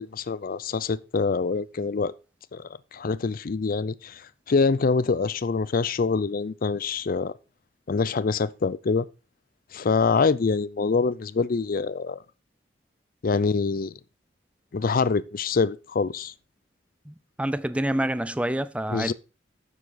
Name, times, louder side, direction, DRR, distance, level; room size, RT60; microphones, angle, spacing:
voice 1, 0.0-2.1 2.5-7.3 7.9-9.0 9.7-12.2 13.2-13.9 14.7-16.3 18.9-19.1, left 4 dB, 50° left, 0.5 m, -25 dB
voice 2, 17.1-19.1, right 1 dB, 5° right, 0.5 m, -27 dB
9.8 x 7.4 x 3.9 m
head